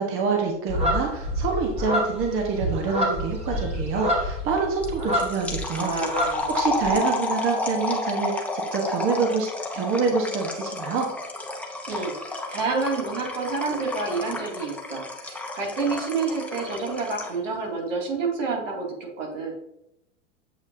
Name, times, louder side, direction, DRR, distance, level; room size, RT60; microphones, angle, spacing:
voice 1, 0.0-11.1, right 4 dB, 35° right, 2 dB, 1.2 m, -26 dB
sound 1, 0.7-5.6 5.9-6.9, equal, 15° right, 2.0 m, -27 dB
filling cup of water - liquid - pouring, 4.8-17.5, left 2 dB, 5° left, 0.8 m, -31 dB
voice 2, 5.8-6.9 11.9-19.5, right 4 dB, 80° right, 0 dB, 2.4 m, -29 dB
8.0 x 5.2 x 2.7 m, 0.82 s
hypercardioid pair, 125°, 37 cm